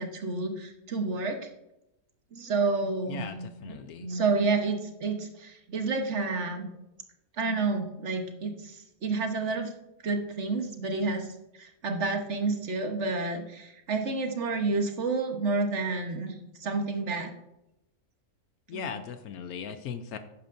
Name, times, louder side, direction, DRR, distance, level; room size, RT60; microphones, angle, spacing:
voice 1, 0.0-1.5 2.3-6.7 7.4-9.7 10.0-11.3 11.6-16.3 16.6-17.3 18.7-18.9, right 3 dB, 50° right, 4 dB, 1.4 m, -30 dB
voice 2, 3.1-4.1 18.7-20.2, left 7 dB, 80° left, 9 dB, 1.1 m, -38 dB
12.0 x 9.5 x 2.6 m, 0.88 s
omnidirectional pair, 1.6 m